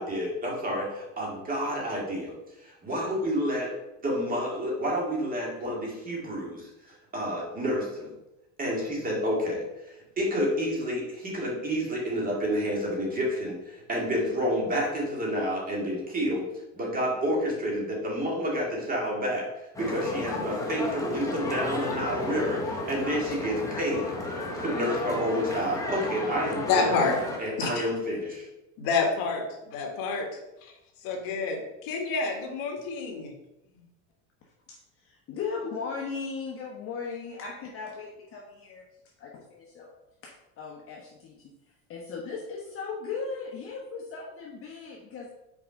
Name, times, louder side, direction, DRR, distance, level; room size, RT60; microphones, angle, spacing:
voice 1, 0.0-3.7 4.0-6.7 7.1-8.1 8.6-9.7 10.2-16.4 16.7-19.5 19.8-28.5, equal, 20° right, 2.2 m, -29 dB
sound 1, 19.7-27.4, left 2 dB, 10° left, 1.1 m, -33 dB
voice 2, 26.7-27.2 27.6-27.7 28.8-30.3 31.0-33.3, left 4 dB, 60° left, 1.7 m, -28 dB
voice 3, 34.7-38.8 39.2-39.9 40.2-41.5 41.9-45.3, left 5 dB, 35° left, 1.1 m, -37 dB
5.8 x 4.8 x 5.2 m
cardioid pair, 145°, 40 cm